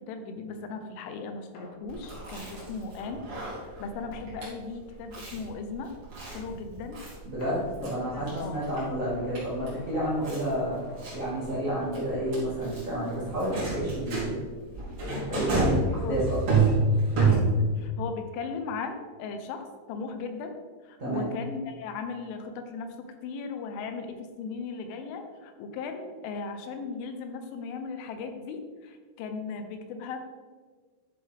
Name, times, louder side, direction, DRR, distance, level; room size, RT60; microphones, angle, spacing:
voice 1, 0.1-3.2 3.6-5.9 6.3-7.0 7.8-8.6 15.1-15.7 16.0-16.2 17.2-20.6 20.8-23.0 23.2-30.2, left 4 dB, 80° left, 6 dB, 3.3 m, -37 dB
sound 1, 1.5-4.6 4.9-5.1 5.5-5.6 7.4-12.3 12.6-12.8 13.2-13.3, left 2 dB, 55° left, 3.2 m, -48 dB
Chewing mastication, 1.9-17.8, right 3 dB, 35° right, 3.1 m, -30 dB
voice 2, 7.2-10.8 11.1-14.3 15.1-16.4 16.9-17.0 21.0-21.3, right 1 dB, 85° right, -9 dB, 0.7 m, -30 dB
11.0 x 7.1 x 3.5 m, 1.5 s
omnidirectional pair, 5.6 m